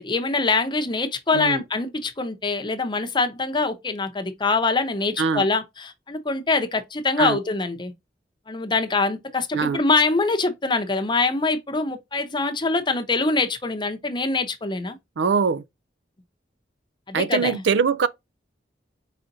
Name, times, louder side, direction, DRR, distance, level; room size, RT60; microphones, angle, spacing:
voice 1, 0.0-7.9 8.5-15.0 17.1-17.6, left 3 dB, 25° left, 0.8 m, -24 dB
voice 2, 15.2-15.6 17.1-18.1, right 5 dB, 80° right, 0.5 m, -22 dB
4.9 x 4.0 x 2.6 m
head